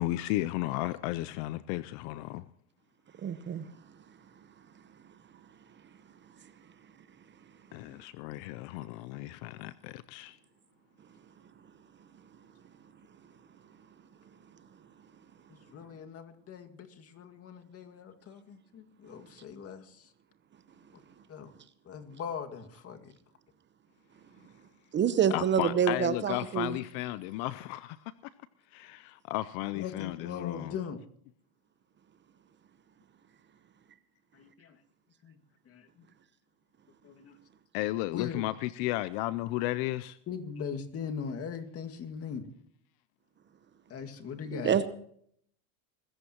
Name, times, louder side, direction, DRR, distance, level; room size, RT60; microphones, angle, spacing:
voice 1, 0.0-2.4 7.7-10.4 25.3-28.1 28.7-30.7 37.7-40.2, left 16 dB, 55° left, 0.6 m, -34 dB
voice 2, 3.2-3.6 24.9-26.7 44.6-44.9, right 8 dB, 25° right, 0.9 m, -27 dB
voice 3, 15.5-20.1 21.3-21.5 21.9-23.1 29.7-31.0 34.3-34.8 35.2-35.4 35.7-36.1 37.0-37.4 38.1-38.5 40.3-42.5 43.9-44.8, left 7 dB, 35° left, 2.1 m, -40 dB
24.0 x 14.5 x 3.0 m
supercardioid pair, 115°, 43 cm